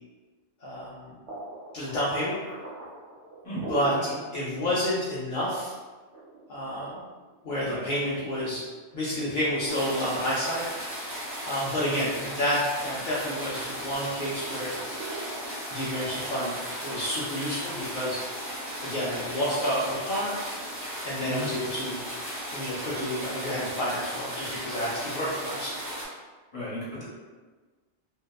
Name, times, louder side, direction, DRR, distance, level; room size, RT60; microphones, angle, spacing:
voice 1, 0.6-1.1 1.7-2.4 3.7-3.9 4.3-5.7 6.5-7.0 7.4-8.6 8.9-10.7 11.4-14.7 15.7-16.5 16.8-18.2 18.8-20.4 21.0-22.0 22.5-25.8, equal, 60° left, -8 dB, 0.5 m, -29 dB
sound 1, 1.3-4.2 4.6-4.7 5.0-5.1 5.9-8.2 8.7-9.1 9.6-9.7 10.2-11.2 11.5-13.4 13.8-17.3, right 3 dB, 65° right, 1.1 m, -42 dB
voice 2, 3.4-4.2 7.7-7.9 21.2-21.5 26.5-27.0, right 1 dB, 30° left, -8 dB, 1.0 m, -35 dB
sound 2, 9.7-26.0, equal, 15° right, 0.5 m, -36 dB
2.6 x 2.2 x 2.3 m, 1.4 s
omnidirectional pair, 1.2 m